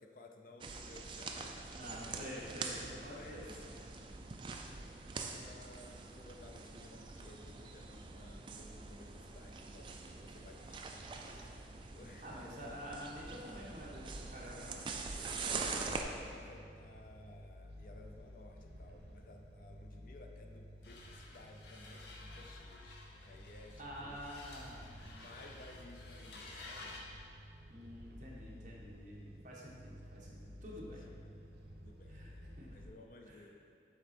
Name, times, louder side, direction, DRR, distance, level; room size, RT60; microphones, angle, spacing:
voice 1, 0.0-2.1 3.1-3.6 4.1-4.5 5.2-11.6 11.8-12.7 15.5-24.2 24.7-27.0 30.8-31.3 31.8-33.5, left 2 dB, 50° left, 3 dB, 0.5 m, -57 dB
sound 1, 0.6-16.0, right 4 dB, 30° right, 0.3 m, -44 dB
voice 2, 1.7-3.5 4.6-4.7 12.2-14.8 23.8-24.9 27.7-31.1 32.1-32.7 33.3-33.4, equal, 45° right, -4 dB, 1.1 m, -48 dB
sound 2, 15.3-32.9, equal, 70° right, 0.9 m, -53 dB
sound 3, 20.8-27.1, left 2 dB, 75° left, 0.8 m, -53 dB
7.6 x 4.0 x 4.3 m, 2.4 s
head